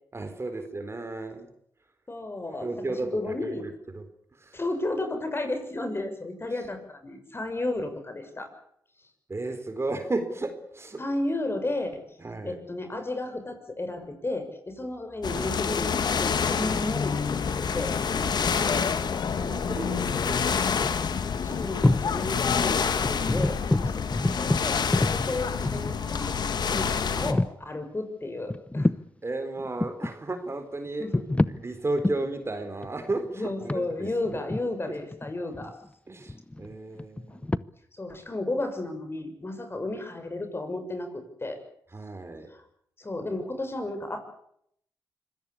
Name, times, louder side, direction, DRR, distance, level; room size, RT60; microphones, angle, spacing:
voice 1, 0.1-1.5 2.6-4.1 4.3-4.6 9.3-11.0 12.2-12.6 18.1-21.4 29.2-31.1 31.5-34.1 36.1-37.5 41.9-42.5, right 2 dB, 35° right, 8 dB, 4.2 m, -34 dB
voice 2, 2.1-2.7 3.1-3.6 4.5-8.5 11.0-12.0 12.4-18.0 20.0-20.3 21.4-28.9 31.0-31.2 33.3-35.8 38.0-41.6 43.0-44.2, left 2 dB, 30° left, 7 dB, 6.7 m, -33 dB
sound 1, 15.2-27.3, left 6 dB, 70° left, 1.9 m, -27 dB
sound 2, 18.0-18.7 20.5-20.6 20.8-21.0 21.6-22.2 22.5-22.6 23.0-26.2 26.7-26.8 27.2-27.6 28.5-29.1 29.6-30.1 30.9-31.6 32.0-32.3 32.8-35.9 36.2-37.6, left 2 dB, 15° left, 0.9 m, -27 dB
25.0 x 17.5 x 8.6 m, 0.70 s
cardioid pair, 55°, 8 cm